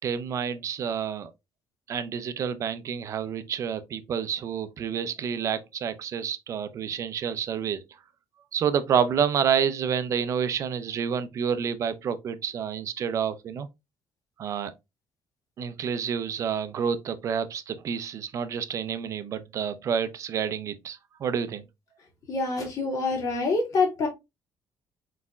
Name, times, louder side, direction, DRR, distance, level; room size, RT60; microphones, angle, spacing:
voice 1, 0.0-1.3 1.9-7.8 8.5-13.7 14.4-14.7 15.6-21.6, right 7 dB, 40° right, 0.5 m, -29 dB
voice 2, 22.3-24.1, left 3 dB, 50° left, 2.0 m, -26 dB
4.4 x 4.1 x 2.3 m
cardioid pair, 165°, 8 cm